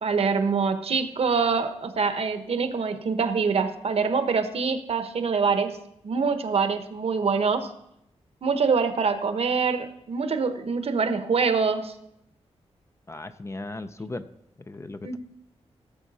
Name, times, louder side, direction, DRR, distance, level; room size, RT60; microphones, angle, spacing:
voice 1, 0.0-5.8 6.0-7.7 8.4-11.9 15.0-15.2, right 5 dB, 60° right, 8 dB, 1.0 m, -25 dB
voice 2, 13.1-14.3 14.7-15.2, left 2 dB, 25° left, 10 dB, 0.6 m, -36 dB
16.5 x 7.2 x 4.1 m, 0.80 s
wide cardioid pair, 105°, 11 cm